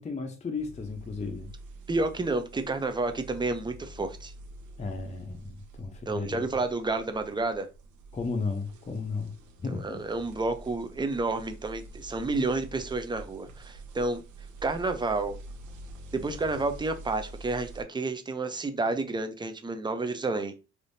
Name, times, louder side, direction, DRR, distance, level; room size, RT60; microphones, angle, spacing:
voice 1, 0.0-1.5 4.8-6.5 8.1-9.3 9.6-10.0, left 4 dB, 25° left, 0.7 m, -34 dB
sound 1, 0.6-17.8, right 1 dB, 75° right, 0.9 m, -47 dB
voice 2, 1.9-4.3 6.1-7.7 9.7-14.2 14.6-15.4 16.1-20.6, right 3 dB, 15° right, 0.5 m, -30 dB
3.4 x 2.7 x 2.6 m
cardioid pair, 90°, 30 cm